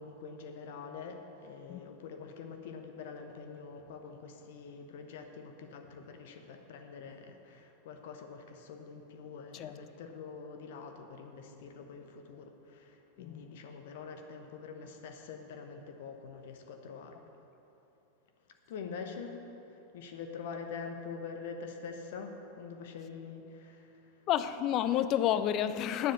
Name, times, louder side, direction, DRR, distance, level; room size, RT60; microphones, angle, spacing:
voice 1, 0.0-17.2 18.7-19.4 19.9-23.9, left 5 dB, 55° left, 0.9 m, -45 dB
voice 2, 24.3-26.1, left 11 dB, 35° left, 0.5 m, -30 dB
9.7 x 7.4 x 7.3 m
figure-of-eight pair, 90°, 0 cm